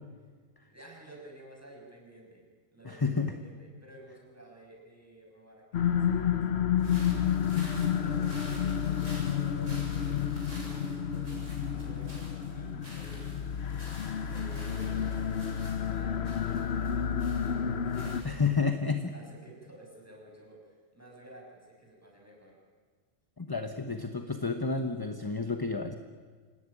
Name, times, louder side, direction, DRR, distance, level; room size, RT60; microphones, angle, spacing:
voice 1, 0.7-6.5 7.0-18.8 19.1-22.6, right 1 dB, 10° right, -1 dB, 6.4 m, -53 dB
voice 2, 2.8-3.3 18.2-19.1 23.4-26.0, left 4 dB, 20° left, 7 dB, 1.0 m, -30 dB
sound 1, 5.7-18.2, left 8 dB, 60° left, 1.1 m, -30 dB
sound 2, 6.8-18.7, equal, 80° right, 8.2 m, -51 dB
26.0 x 17.5 x 9.9 m, 1.5 s
omnidirectional pair, 1.3 m